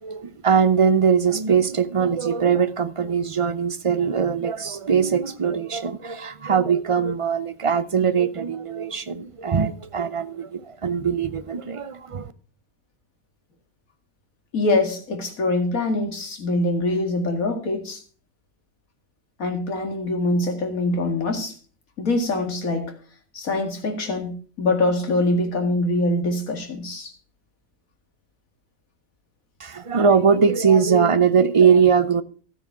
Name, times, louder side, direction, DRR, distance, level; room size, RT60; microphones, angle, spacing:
voice 1, 0.0-12.3 29.6-32.2, right 6 dB, 40° right, 0.4 m, -21 dB
voice 2, 14.5-18.0 19.4-21.5 22.0-22.9 23.3-27.1, left 2 dB, 85° left, 2.5 m, -24 dB
13.5 x 9.0 x 4.6 m
omnidirectional pair, 1.4 m